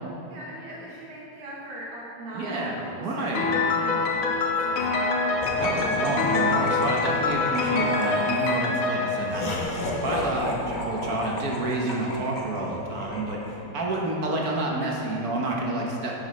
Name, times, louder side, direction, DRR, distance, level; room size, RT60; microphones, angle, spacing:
voice 1, 0.3-5.5, right 1 dB, 85° right, -5 dB, 1.9 m, -40 dB
voice 2, 2.3-3.5 5.5-9.6 10.0-16.1, right 2 dB, 55° right, -1 dB, 1.2 m, -29 dB
Piano, 3.3-10.2, left 3 dB, 85° left, 1.7 m, -25 dB
Laughter, 5.4-13.8, left 1 dB, 50° left, 0.5 m, -34 dB
9.4 x 9.3 x 3.1 m, 2.8 s
omnidirectional pair, 2.2 m